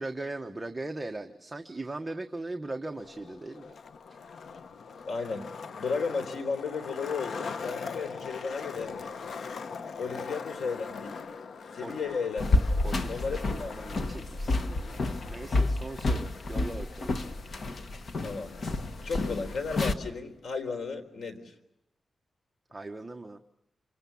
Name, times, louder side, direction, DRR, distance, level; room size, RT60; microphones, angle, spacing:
voice 1, 0.0-3.7 10.0-10.3 11.8-11.9 12.8-13.2 13.5-17.1 17.7-17.9 22.7-23.4, right 2 dB, 15° right, 4 dB, 1.1 m, -39 dB
Skateboard, 2.9-19.9, left 5 dB, 65° left, 1.0 m, -42 dB
voice 2, 5.1-5.5 5.7-9.1 10.0-11.2 11.7-12.6 13.1-13.9 18.2-18.5 19.0-21.5, left 5 dB, 85° left, 7 dB, 4.0 m, -34 dB
sound 1, 12.4-19.9, left 2 dB, 50° left, 1.5 m, -30 dB
27.5 x 26.0 x 7.1 m, 0.84 s
wide cardioid pair, 160°, 0 cm